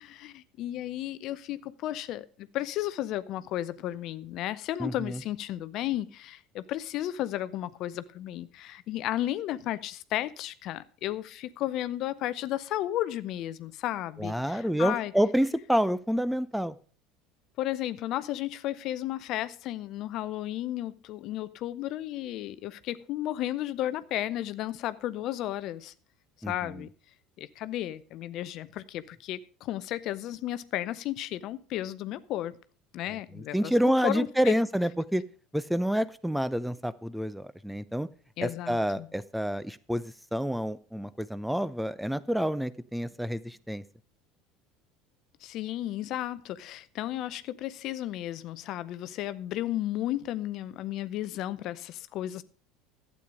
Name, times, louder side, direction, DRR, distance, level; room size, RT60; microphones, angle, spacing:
voice 1, 0.0-15.1 17.6-25.9 26.5-26.9 27.4-32.6 32.9-34.6 38.4-39.1 45.4-52.4, left 13 dB, 55° left, 0.6 m, -33 dB
voice 2, 4.8-5.2 14.2-16.8 26.4-26.8 33.5-35.2 35.5-38.1 38.4-43.8, equal, 5° right, 0.6 m, -28 dB
12.0 x 8.5 x 5.1 m
hypercardioid pair, 70°, 0 cm